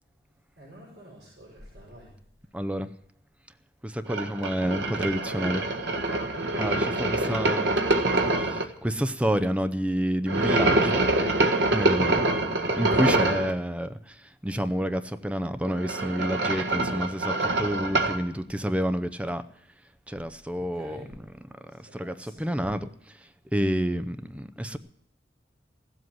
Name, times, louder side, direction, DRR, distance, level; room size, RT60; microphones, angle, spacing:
voice 1, 0.6-2.1 20.6-21.1 21.7-22.5, right 1 dB, 60° right, -4 dB, 6.3 m, -48 dB
voice 2, 2.5-2.9 3.8-5.7 6.6-7.8 8.1-11.0 11.7-19.4 20.1-21.0 21.8-24.8, equal, 5° right, 11 dB, 0.6 m, -29 dB
sound 1, 4.1-8.6 10.3-13.5 15.6-18.2, right 2 dB, 80° right, 1.7 m, -25 dB
16.0 x 7.9 x 9.4 m, 0.70 s
head